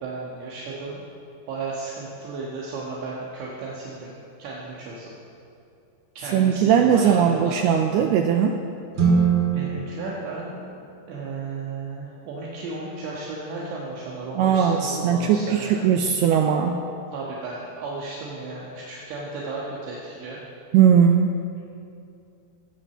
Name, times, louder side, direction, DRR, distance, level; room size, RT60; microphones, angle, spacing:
voice 1, 0.0-1.0 1.5-4.1 4.4-5.1 6.2-7.6 9.5-10.7 11.1-15.9 17.1-20.4, right 3 dB, 75° right, -5 dB, 3.5 m, -34 dB
voice 2, 6.3-8.6 14.4-16.8 20.7-21.6, right 7 dB, 90° right, 4 dB, 2.3 m, -19 dB
sound 1, 8.9-11.4, right 6 dB, 45° right, 1.7 m, -24 dB
16.0 x 8.8 x 6.9 m, 2.6 s
omnidirectional pair, 5.2 m